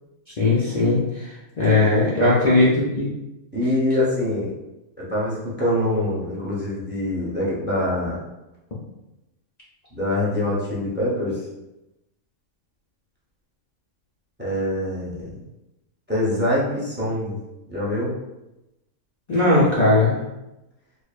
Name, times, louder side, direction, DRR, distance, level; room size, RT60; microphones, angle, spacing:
voice 1, 0.4-1.0 1.6-3.1 19.3-20.2, left 2 dB, 80° left, -7 dB, 0.3 m, -18 dB
voice 2, 2.2-2.6 3.5-4.5 5.0-8.2 9.9-11.4 14.4-15.4 16.1-17.4 17.7-18.1, left 1 dB, 10° right, -6 dB, 0.5 m, -24 dB
4.9 x 2.1 x 2.4 m, 0.96 s
omnidirectional pair, 1.5 m